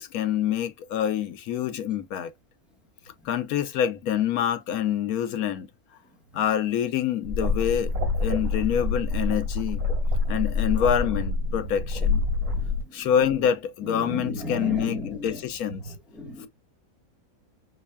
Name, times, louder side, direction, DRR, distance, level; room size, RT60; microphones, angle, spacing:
voice 1, 0.0-2.3 3.2-5.7 6.3-7.9 8.2-9.8 10.3-12.2 12.9-15.8, left 9 dB, 80° left, 1.1 m, -26 dB
sound 1, 7.2-12.8, left 3 dB, 75° right, 2.8 m, -26 dB
voice 2, 12.5-13.1 13.8-15.4 15.8-16.5, left 1 dB, ahead, 1.0 m, -35 dB
6.1 x 2.1 x 2.2 m
omnidirectional pair, 1.6 m